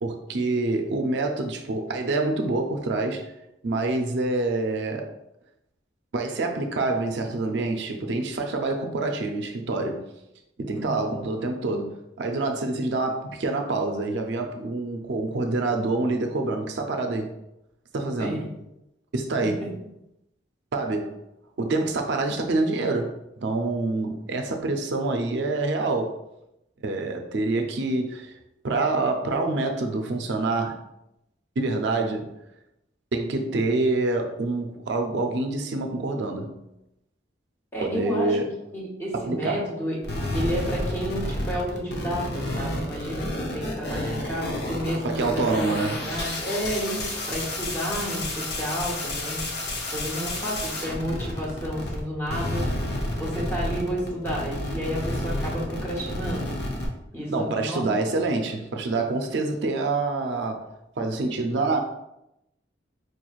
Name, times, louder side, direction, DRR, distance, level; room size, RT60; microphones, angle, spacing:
voice 1, 0.0-3.3 3.6-5.1 6.1-10.0 10.6-17.3 17.9-18.5 19.1-19.6 20.7-21.2 21.6-26.2 26.8-28.4 28.6-30.8 31.6-32.3 33.1-36.6 37.8-38.5 39.1-39.7 45.0-46.1 57.3-60.7 61.0-61.8, right 2 dB, 65° right, 0.4 m, -26 dB
voice 2, 10.7-11.1 18.2-18.5 37.7-38.4 38.7-40.0 40.3-49.4 49.9-52.7 53.2-56.6 57.1-57.8, equal, 10° left, 1.0 m, -31 dB
sound 1, 40.0-52.0 52.3-56.9, left 1 dB, 55° left, 0.7 m, -30 dB
4.5 x 3.0 x 2.4 m
head